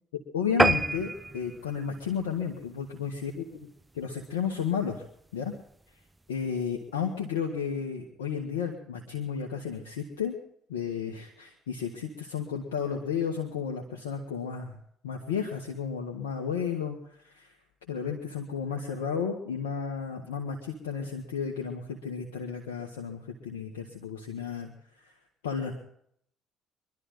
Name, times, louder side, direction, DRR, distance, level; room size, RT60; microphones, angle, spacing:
voice 1, 0.1-3.5 3.9-5.0 5.3-5.5 6.3-10.3 10.7-14.8 15.0-17.0 17.2-17.5 17.9-24.7 25.4-25.7, left 7 dB, 85° left, 1 dB, 1.7 m, -33 dB
sound 1, 0.6-3.3 3.8-4.0 4.5-4.6 4.9-5.0 5.2-5.3, right 2 dB, 15° right, 0.8 m, -28 dB
24.0 x 12.0 x 3.9 m, 0.68 s
hypercardioid pair, 55°, 0 cm